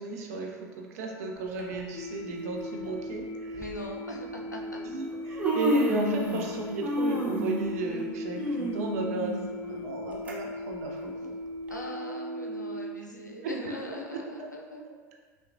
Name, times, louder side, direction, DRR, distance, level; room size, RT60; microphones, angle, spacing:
voice 1, 0.0-3.6 4.8-11.3 13.4-13.5 14.4-14.5, right 3 dB, 60° right, 1 dB, 0.6 m, -35 dB
Human voice, 1.6-1.8 2.8-2.9 3.5-3.7 4.7-4.8 5.1-6.5 6.8-10.3 10.7-10.8 11.7-11.8, equal, 15° right, 0.7 m, -30 dB
sound 1, 1.9-12.9, left 1 dB, 35° left, 0.5 m, -38 dB
voice 2, 3.5-5.2 11.7-14.8, left 1 dB, 90° left, 0 dB, 0.5 m, -41 dB
5.6 x 2.3 x 2.5 m, 1.5 s
figure-of-eight pair, 75°, 9 cm